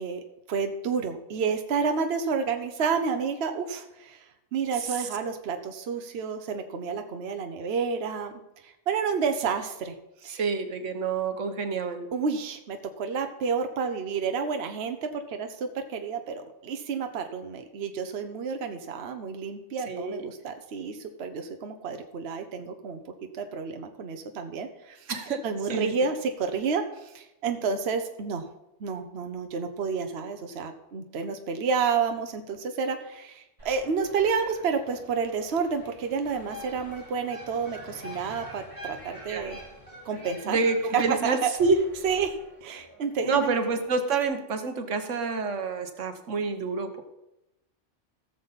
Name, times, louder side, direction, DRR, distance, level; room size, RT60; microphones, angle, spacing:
voice 1, 0.0-4.2 4.5-8.3 8.6-9.9 10.2-10.4 12.1-25.1 25.4-28.5 28.8-39.6 40.0-40.6 40.9-41.5 42.0-43.5, right 5 dB, 60° right, 6 dB, 1.1 m, -30 dB
voice 2, 10.3-12.1 19.9-20.3 25.1-25.9 39.3-39.5 40.4-41.8 43.2-47.0, right 4 dB, 85° right, 7 dB, 1.4 m, -28 dB
sound 1, 33.6-44.3, left 1 dB, 30° right, 4.3 m, -51 dB
sound 2, 34.2-41.3, equal, 10° left, 3.3 m, -46 dB
17.0 x 6.9 x 4.1 m, 0.90 s
omnidirectional pair, 1.2 m